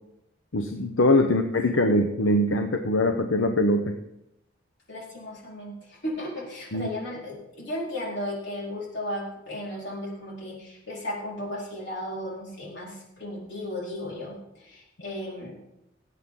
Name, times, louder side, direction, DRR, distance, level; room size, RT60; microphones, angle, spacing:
voice 1, 0.5-4.0 6.7-6.9, left 1 dB, 85° left, 6 dB, 0.8 m, -22 dB
voice 2, 4.9-15.5, left 1 dB, 65° left, -4 dB, 4.4 m, -35 dB
18.5 x 8.4 x 3.8 m, 0.84 s
head